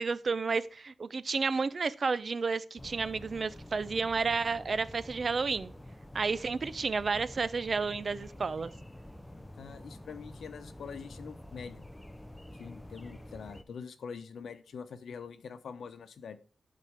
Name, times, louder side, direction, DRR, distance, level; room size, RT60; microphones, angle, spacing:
voice 1, 0.0-5.7 6.1-8.7, right 4 dB, 45° right, 0.5 m, -31 dB
sound 1, 2.8-13.6, left 1 dB, 10° left, 0.7 m, -48 dB
voice 2, 9.6-11.8 12.5-16.4, left 6 dB, 90° left, 0.9 m, -44 dB
11.5 x 4.2 x 4.8 m
wide cardioid pair, 130°, 0 cm